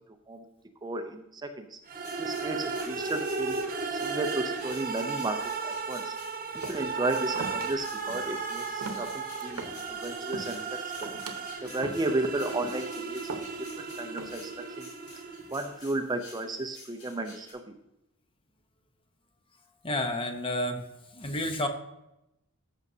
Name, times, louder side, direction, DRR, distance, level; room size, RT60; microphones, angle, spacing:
voice 1, 0.8-1.8 2.2-3.6 4.0-6.1 6.7-9.6 9.9-11.1 11.6-13.4 14.0-14.5 14.8-14.9 15.5-17.7, right 2 dB, 20° right, 6 dB, 0.5 m, -33 dB
sound 1, 1.9-15.7, right 4 dB, 40° right, 1.0 m, -35 dB
sound 2, 2.0-17.5, left 2 dB, 85° left, 3.6 m, -51 dB
sound 3, 6.6-7.0 7.4-7.7 8.1-8.4 8.7-9.9 10.2-10.7 11.0-11.4 11.8-12.1 12.5-12.9 13.3-13.8 14.2-14.6, right 3 dB, 75° right, 1.0 m, -40 dB
voice 2, 19.8-20.8 21.1-21.7, left 1 dB, 25° left, 6 dB, 0.8 m, -30 dB
13.5 x 6.2 x 2.7 m, 0.89 s
head